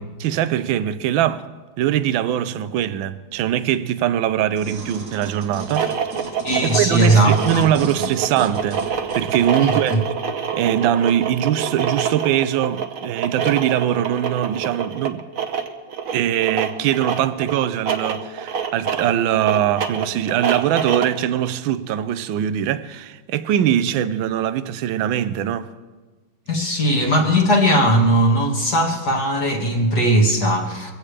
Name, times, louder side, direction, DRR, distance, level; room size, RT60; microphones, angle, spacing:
voice 1, 0.2-1.5 1.8-5.9 6.6-8.8 9.1-10.0 10.5-15.3 16.1-25.7, right 11 dB, 75° right, 1.4 m, -22 dB
sound 1, 4.6-10.0 10.6-10.7, right 3 dB, 90° right, 2.8 m, -35 dB
sound 2, 5.5-21.2, right 7 dB, 50° right, 1.2 m, -26 dB
voice 2, 6.4-7.7 9.6-10.0 26.5-30.9, right 1 dB, 50° left, 2.3 m, -18 dB
22.5 x 16.0 x 3.3 m
omnidirectional pair, 2.3 m